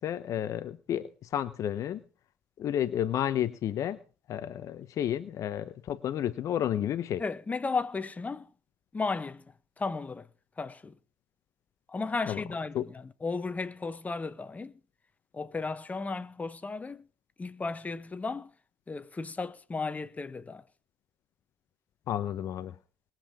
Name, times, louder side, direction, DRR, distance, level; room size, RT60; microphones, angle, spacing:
voice 1, 0.0-2.0 2.6-4.0 4.3-7.2 12.3-12.4 12.7-12.9 22.1-22.8, left 10 dB, 50° left, 0.9 m, -31 dB
voice 2, 7.2-8.5 8.9-10.3 10.6-11.0 11.9-14.8 15.3-17.0 17.4-18.5 18.9-20.7, left 4 dB, 20° left, 1.4 m, -34 dB
21.0 x 7.8 x 5.1 m
hypercardioid pair, 65°, 7 cm